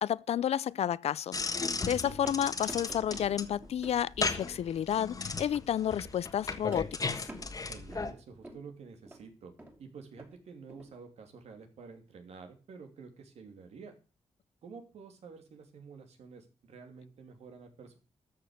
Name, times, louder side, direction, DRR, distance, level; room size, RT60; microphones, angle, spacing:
voice 1, 0.0-1.4 1.9-7.3, left 10 dB, 70° left, 0.5 m, -31 dB
sound 1, 1.3-8.1, left 4 dB, 35° left, 1.5 m, -36 dB
sound 2, 1.3-4.1 4.9-5.5 6.5-8.7 9.0-9.3 9.6-9.8 10.2-10.3 10.7-10.9, right 1 dB, 20° right, 2.9 m, -49 dB
voice 2, 7.7-9.5 9.8-13.9 14.6-18.0, right 5 dB, 75° right, 2.9 m, -49 dB
13.0 x 6.6 x 6.6 m
cardioid pair, 110°, 11 cm